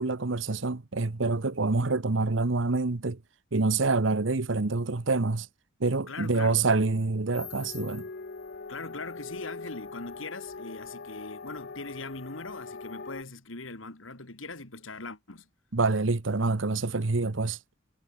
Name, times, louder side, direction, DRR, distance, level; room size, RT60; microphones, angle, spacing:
voice 1, 0.0-3.2 3.5-5.5 5.8-8.1 15.7-17.6, right 3 dB, 65° right, 1.0 m, -26 dB
voice 2, 6.1-6.6 8.7-15.5, left 3 dB, 75° left, 3.1 m, -41 dB
sound 1, 7.3-13.2, left 4 dB, 55° left, 0.9 m, -42 dB
head